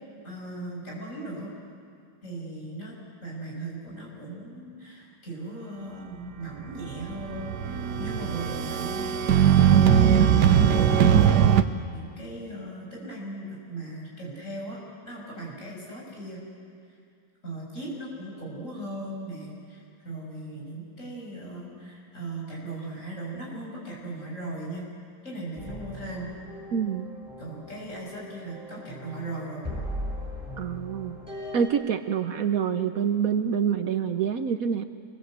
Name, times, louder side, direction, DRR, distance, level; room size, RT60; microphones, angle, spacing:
voice 1, 0.2-1.5 2.2-3.0 3.2-9.2 9.6-16.4 17.4-24.9 25.2-26.3 27.4-29.7, right 2 dB, 50° left, -3 dB, 7.3 m, -38 dB
sound 1, 6.8-11.6, right 9 dB, 80° right, 1.5 m, -20 dB
sound 2, 25.6-31.7, equal, 5° right, 6.0 m, -39 dB
voice 2, 26.7-27.1 30.6-31.2 31.5-34.8, right 7 dB, 65° right, 9 dB, 1.2 m, -26 dB
28.5 x 21.5 x 8.1 m, 2.3 s
omnidirectional pair, 1.8 m